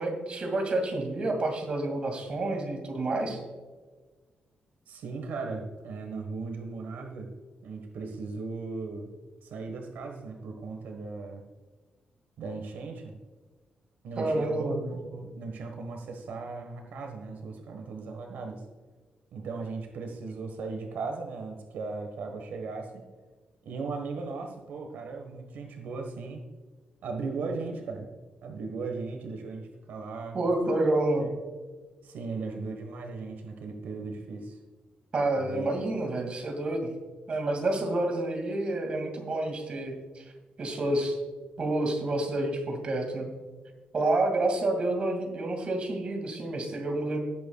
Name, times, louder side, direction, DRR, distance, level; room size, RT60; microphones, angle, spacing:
voice 1, 0.0-3.4 14.2-14.7 30.3-31.3 35.1-36.9 37.3-40.2 40.6-41.2 41.6-43.3 43.9-47.2, right 2 dB, 40° right, 3 dB, 2.2 m, -29 dB
voice 2, 4.9-7.3 7.6-9.1 9.4-11.4 12.4-13.1 14.0-18.6 19.3-23.0 23.6-26.4 27.0-28.1 28.4-30.4 31.2-31.3 32.0-34.6 35.3-35.7, right 4 dB, 90° right, 4 dB, 1.3 m, -37 dB
17.5 x 8.5 x 2.3 m, 1.4 s
wide cardioid pair, 155°, 3 cm